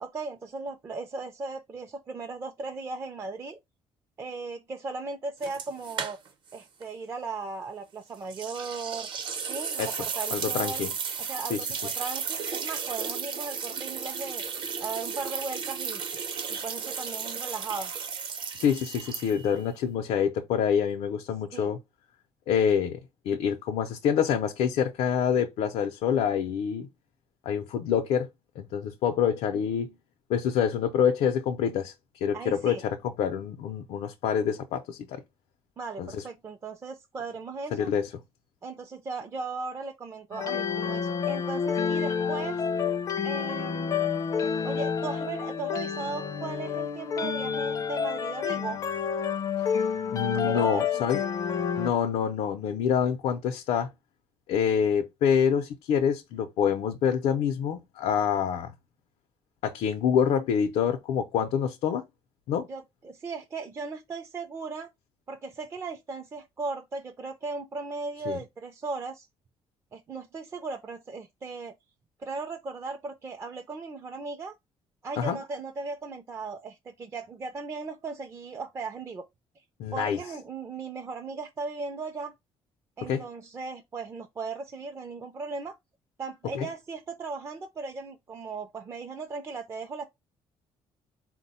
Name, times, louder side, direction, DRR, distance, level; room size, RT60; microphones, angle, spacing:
voice 1, 0.0-3.6 4.2-6.2 6.5-9.1 9.4-10.8 11.2-14.4 14.8-16.0 16.5-17.9 21.5-21.7 32.3-32.8 35.8-37.9 38.6-42.6 43.2-44.0 44.6-48.8 50.3-50.9 62.7-64.9 65.3-69.3 69.9-71.7 72.2-74.5 75.0-79.3 79.9-82.3 83.0-85.8 86.2-90.0, right 4 dB, 25° right, 0.4 m, -37 dB
sound 1, 5.4-6.5 6.8-6.9 8.3-19.6, right 6 dB, 50° right, 0.7 m, -34 dB
voice 2, 10.3-10.9 11.5-11.8 18.6-21.8 22.5-23.0 23.3-26.9 27.5-28.3 28.6-29.9 30.3-31.9 32.2-35.2 36.0-36.2 37.7-38.1 50.1-51.2 51.8-53.9 54.5-58.7 59.6-62.0 62.5-62.7 68.3-68.4 75.2-75.4 79.8-80.2 83.1-83.2 86.5-86.7, left 8 dB, 85° left, 0.5 m, -26 dB
sound 2, 40.3-51.9, left 7 dB, 35° left, 0.4 m, -29 dB
4.1 x 2.2 x 4.0 m
cardioid pair, 155°, 10 cm